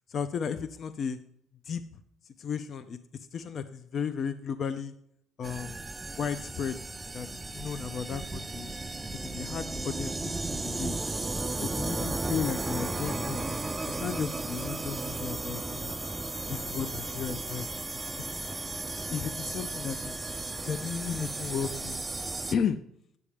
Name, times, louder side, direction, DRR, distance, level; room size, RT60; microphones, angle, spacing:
voice 1, 0.1-1.2 1.6-1.8 2.2-4.9 5.4-5.8 6.2-6.8 7.1-7.3 7.5-8.7 9.1-10.9 11.6-13.4 13.9-15.9 16.5-17.7 18.3-18.5 19.1-22.0 22.5-22.8, left 7 dB, 50° left, 11 dB, 0.4 m, -34 dB
sound 1, 5.4-22.5, right 2 dB, 15° right, 0.4 m, -35 dB
10.0 x 8.5 x 3.4 m, 0.71 s
cardioid pair, 105°, 0 cm